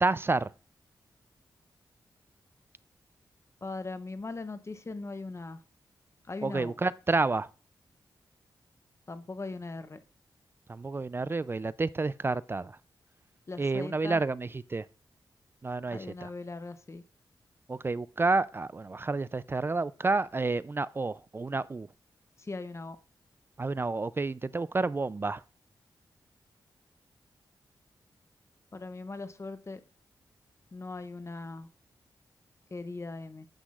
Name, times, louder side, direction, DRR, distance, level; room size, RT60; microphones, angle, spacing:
voice 1, 0.0-0.5 6.4-7.5 10.7-12.8 13.6-14.9 15.6-16.3 17.7-21.9 23.6-25.4, right 3 dB, 30° right, 0.3 m, -30 dB
voice 2, 3.6-5.6 6.3-6.7 9.1-10.0 13.5-14.2 15.9-17.0 22.4-23.0 28.7-29.8 30.7-31.7 32.7-33.5, left 3 dB, 35° left, 0.7 m, -39 dB
9.8 x 8.2 x 2.4 m
cardioid pair, 75°, 8 cm